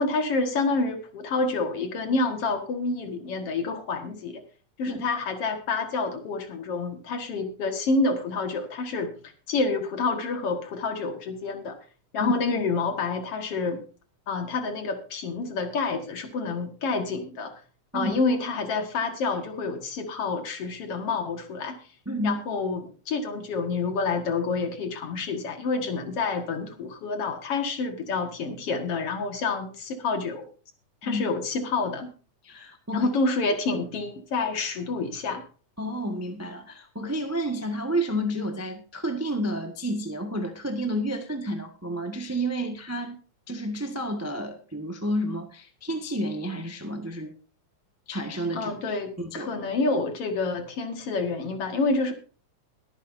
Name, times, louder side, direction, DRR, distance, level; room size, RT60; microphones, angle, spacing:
voice 1, 0.0-4.4 4.8-9.1 9.5-11.8 12.1-13.8 14.3-17.5 17.9-21.8 22.2-30.5 31.0-32.1 32.9-35.4 48.6-52.1, left 3 dB, 55° left, 6 dB, 2.6 m, -28 dB
voice 2, 22.0-22.4 31.0-31.2 32.4-33.1 35.8-43.2 43.5-47.3 48.1-49.5, equal, 15° right, 4 dB, 0.5 m, -30 dB
22.0 x 9.0 x 2.7 m, 0.39 s
omnidirectional pair, 3.4 m